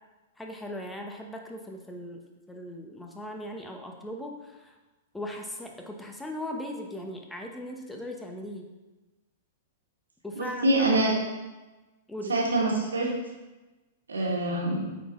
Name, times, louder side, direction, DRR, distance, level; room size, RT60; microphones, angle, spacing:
voice 1, 0.4-2.2 2.5-4.8 5.1-8.7 10.2-11.0 12.1-12.4, left 1 dB, 5° left, 2 dB, 1.0 m, -38 dB
voice 2, 10.3-11.2 12.3-13.1 14.1-14.8, right 2 dB, 90° right, -2 dB, 1.8 m, -25 dB
8.4 x 4.2 x 3.7 m, 1.1 s
hypercardioid pair, 110°, 0 cm